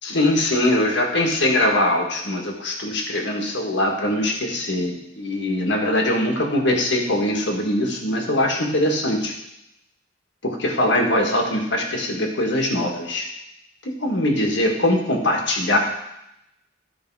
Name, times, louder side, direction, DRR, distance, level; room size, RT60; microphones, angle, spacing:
voice 1, 0.0-9.3 10.4-13.3 13.8-15.8, left 1 dB, 65° left, 1 dB, 1.7 m, -22 dB
12.5 x 4.8 x 4.7 m, 0.82 s
head